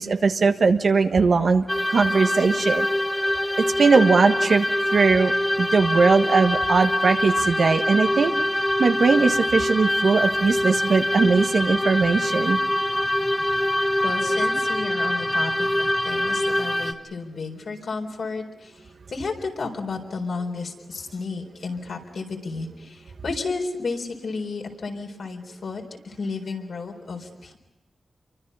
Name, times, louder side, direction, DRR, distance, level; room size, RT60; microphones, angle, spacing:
voice 1, 0.0-1.6 1.9-2.9 3.8-4.7 4.9-5.3 5.6-8.3 8.8-12.6, right 4 dB, 65° right, 6 dB, 1.4 m, -19 dB
sound 1, 1.7-16.9, left 1 dB, 15° left, 1.5 m, -24 dB
voice 2, 14.0-27.6, left 4 dB, 70° left, 2 dB, 4.1 m, -32 dB
28.0 x 24.0 x 5.6 m, 1.1 s
wide cardioid pair, 100°, 0 cm